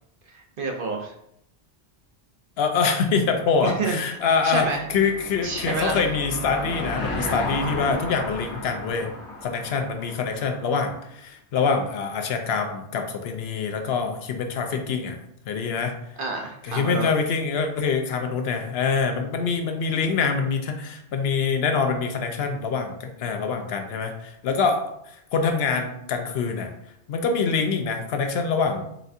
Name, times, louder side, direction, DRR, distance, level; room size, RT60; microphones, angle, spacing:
voice 1, 0.3-1.1 3.6-4.2 4.4-4.8 5.4-6.0 16.2-17.1, right 3 dB, 60° right, 2 dB, 0.7 m, -29 dB
voice 2, 2.6-9.1 9.4-15.2 15.5-15.9 16.6-24.8 25.3-26.7 27.1-28.9, left 5 dB, 70° left, 5 dB, 0.8 m, -25 dB
Car passing by / Engine, 4.1-10.8, left 1 dB, 85° left, 1.2 m, -34 dB
4.0 x 3.3 x 2.7 m, 0.76 s
omnidirectional pair, 1.1 m